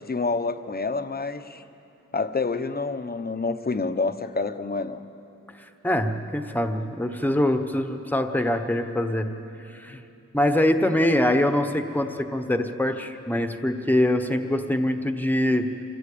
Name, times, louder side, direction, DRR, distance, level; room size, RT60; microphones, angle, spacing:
voice 1, 0.0-1.6 2.1-5.0, left 3 dB, 30° left, 9 dB, 0.9 m, -28 dB
voice 2, 5.8-9.3 9.7-10.0 10.3-15.7, left 1 dB, 5° left, 6 dB, 1.1 m, -24 dB
26.5 x 16.0 x 8.6 m, 2.9 s
wide cardioid pair, 125°, 30 cm